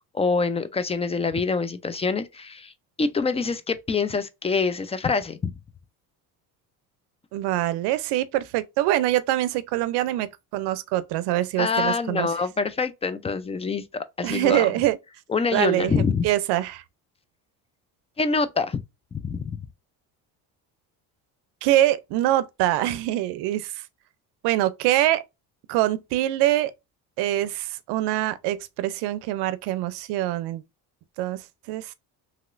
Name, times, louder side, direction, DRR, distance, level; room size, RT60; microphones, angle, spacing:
voice 1, 0.1-2.7 3.0-5.4 11.6-14.7 15.3-16.2 18.2-18.8 19.1-19.5, left 4 dB, 15° left, 0.4 m, -25 dB
voice 2, 7.3-12.3 14.2-15.0 15.5-16.8 21.6-23.7 24.4-25.2 25.7-26.7 27.2-30.6 31.2-31.4 31.7-31.9, right 14 dB, 80° right, 0.6 m, -24 dB
3.0 x 2.9 x 2.5 m
supercardioid pair, 90°, 40 cm